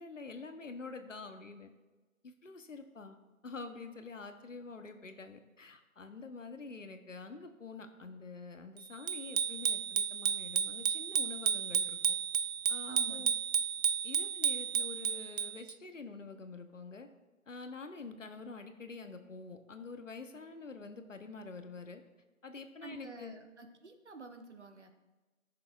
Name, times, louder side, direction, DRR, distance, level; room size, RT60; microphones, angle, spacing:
voice 1, 0.0-1.7 2.2-3.2 3.4-12.0 12.7-13.3 14.0-17.1 17.5-22.0 22.4-23.4, left 4 dB, 65° left, 7 dB, 1.0 m, -47 dB
Bicycle bell, 9.1-15.7, right 7 dB, 80° right, 0.5 m, -32 dB
voice 2, 12.9-13.4 22.8-24.9, right 3 dB, 55° right, 6 dB, 0.9 m, -49 dB
15.0 x 6.8 x 2.4 m, 1.2 s
figure-of-eight pair, 175°, 41 cm